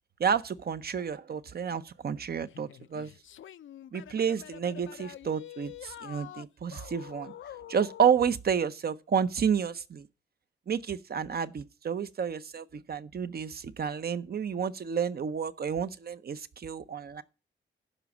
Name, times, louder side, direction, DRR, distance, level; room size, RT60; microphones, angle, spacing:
voice 1, 0.2-3.1 3.9-7.3 7.7-10.1 10.7-17.2, right 7 dB, 50° right, 0.7 m, -30 dB
sound 1, 2.5-8.2, left 11 dB, 70° left, 0.4 m, -46 dB
12.0 x 5.2 x 7.1 m
wide cardioid pair, 110°, 21 cm